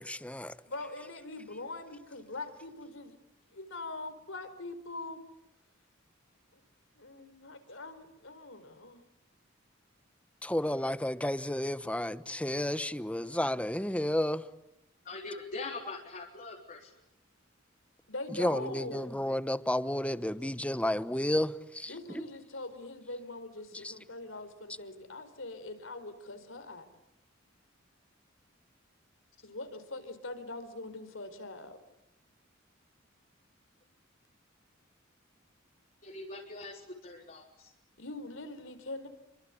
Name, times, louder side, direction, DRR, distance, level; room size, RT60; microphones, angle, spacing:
voice 1, 0.0-0.5 10.4-14.4 18.4-22.2 23.8-23.9, left 1 dB, 5° left, 1.1 m, -32 dB
voice 2, 0.6-3.2 3.5-5.2 6.5-6.6 7.0-9.0 18.1-19.2 21.9-26.9 29.4-31.8 38.0-39.1, left 2 dB, 70° left, 4.5 m, -42 dB
voice 3, 15.1-16.9 36.0-37.7, left 3 dB, 45° left, 3.9 m, -42 dB
28.5 x 24.0 x 8.6 m
head